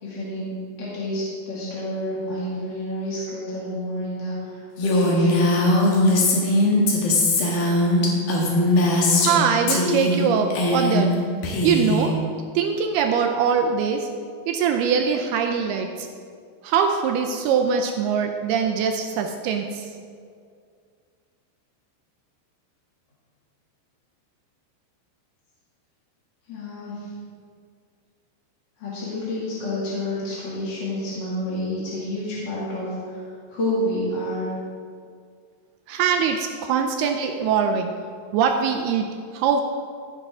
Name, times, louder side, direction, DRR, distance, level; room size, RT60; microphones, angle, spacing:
voice 1, 0.0-6.2 26.5-26.9 28.8-32.9 33.5-34.5, left 1 dB, 35° left, -8 dB, 1.9 m, -29 dB
Female speech woman speaking, 4.8-9.4 9.7-10.2 10.5-11.1 11.4-12.1, left 1 dB, 65° left, 3.2 m, -20 dB
voice 2, 9.2-11.1 11.6-12.1 12.6-14.1 14.5-16.1 16.6-19.9 35.9-37.9 38.3-39.1 39.3-39.6, right 7 dB, 80° right, 4 dB, 2.3 m, -22 dB
14.5 x 9.9 x 3.7 m, 2.2 s
omnidirectional pair, 5.1 m